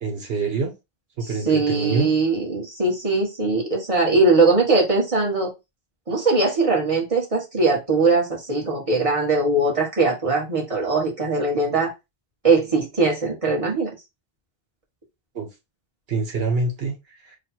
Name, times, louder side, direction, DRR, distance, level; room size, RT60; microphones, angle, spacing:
voice 1, 0.0-0.7 1.2-2.1 15.3-15.5 16.1-17.4, right 4 dB, 75° right, 1.2 m, -26 dB
voice 2, 1.4-5.5 6.1-11.9 12.4-13.9, right 3 dB, 35° right, 1.5 m, -20 dB
3.3 x 2.4 x 4.2 m
omnidirectional pair, 1.0 m